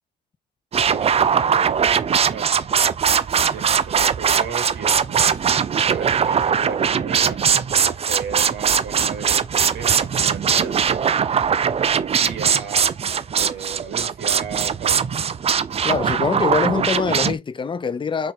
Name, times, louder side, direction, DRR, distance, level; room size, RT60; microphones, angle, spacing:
sound 1, 0.7-17.4, right 7 dB, 30° right, 0.4 m, -20 dB
voice 1, 0.8-2.5 3.5-7.4 7.8-11.1 11.8-12.9 13.3-15.0, right 6 dB, 60° right, 0.9 m, -35 dB
voice 2, 15.8-18.3, left 5 dB, 25° left, 0.5 m, -23 dB
3.8 x 2.5 x 4.2 m
cardioid pair, 90°, 20 cm